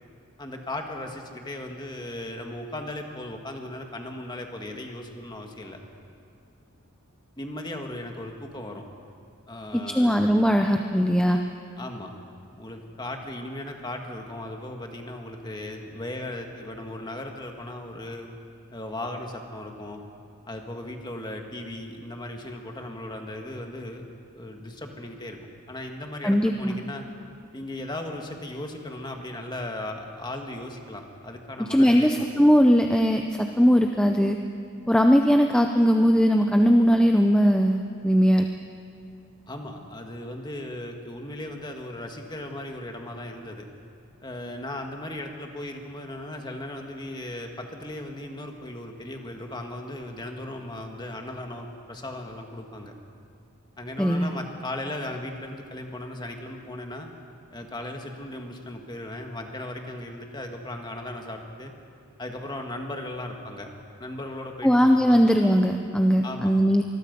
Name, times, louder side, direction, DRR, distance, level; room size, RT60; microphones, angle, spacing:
voice 1, 0.4-5.8 7.4-8.8 9.5-10.4 11.8-12.1 12.6-18.3 18.7-20.0 20.5-24.0 24.3-27.1 27.5-32.3 39.5-43.7 44.2-52.9 53.8-57.1 57.5-61.7 62.2-63.7 64.0-65.3 66.2-66.5, left 1 dB, 20° left, 3 dB, 1.8 m, -37 dB
voice 2, 9.7-11.4 26.2-26.8 31.7-34.4 34.9-38.5 54.0-54.3 64.6-66.8, equal, 5° left, 4 dB, 0.7 m, -20 dB
26.0 x 20.5 x 5.4 m, 2.5 s
head